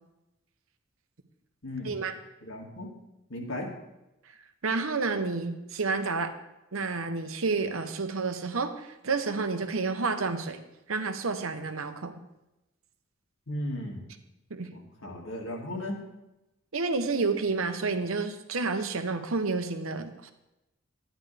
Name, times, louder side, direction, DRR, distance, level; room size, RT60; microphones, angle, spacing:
voice 1, 2.4-2.9 3.3-3.7 13.5-14.0 14.7-16.0, left 1 dB, 75° left, 0 dB, 2.0 m, -36 dB
voice 2, 4.6-6.3 6.7-10.6 10.9-12.2 14.5-14.7 16.7-20.3, right 4 dB, 85° right, 8 dB, 0.9 m, -30 dB
11.5 x 10.0 x 3.4 m, 0.94 s
head